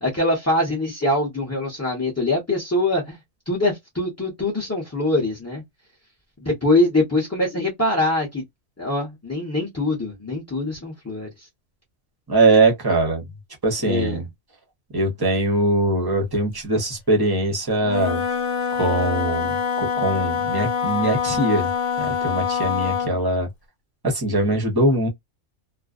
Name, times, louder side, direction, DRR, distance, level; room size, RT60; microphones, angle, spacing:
voice 1, 0.0-3.2 3.5-5.6 6.4-8.4 8.8-11.5 13.8-14.2, left 2 dB, 15° left, 0.6 m, -23 dB
voice 2, 12.3-13.3 13.6-14.3 14.9-18.2 18.7-21.7 22.0-23.5 24.0-25.1, right 2 dB, 25° right, 0.6 m, -21 dB
Wind instrument woodwind instrument, 17.8-23.2, left 7 dB, 70° left, 1.0 m, -25 dB
2.4 x 2.2 x 2.4 m
omnidirectional pair, 1.3 m